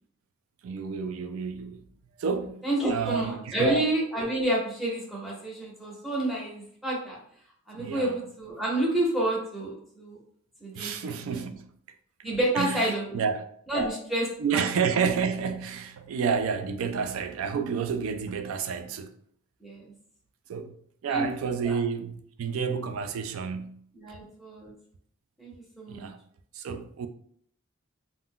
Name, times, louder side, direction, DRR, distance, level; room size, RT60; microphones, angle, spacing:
voice 1, 0.6-1.8 2.2-3.8 7.7-8.2 10.8-11.7 12.6-13.4 14.4-19.1 20.5-20.7 21.0-23.8 25.9-26.2 26.5-27.1, right 6 dB, 80° right, 0.3 m, -30 dB
voice 2, 2.6-7.2 7.7-10.2 10.6-10.9 11.3-11.4 12.2-13.2 13.7-14.6 19.6-19.8 21.1-21.8 23.9-24.7 25.4-26.1, right 1 dB, ahead, 0.7 m, -29 dB
2.3 x 2.1 x 3.6 m
head